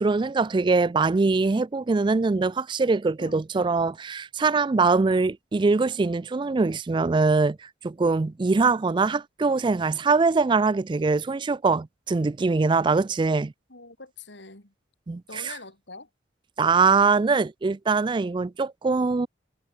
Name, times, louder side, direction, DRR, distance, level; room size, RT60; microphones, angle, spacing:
voice 1, 0.0-7.6 7.8-13.5 15.1-15.5 16.6-19.3, right 4 dB, 25° right, 0.3 m, -23 dB
voice 2, 13.7-14.7 15.3-16.1, left 3 dB, 65° left, 4.2 m, -44 dB
head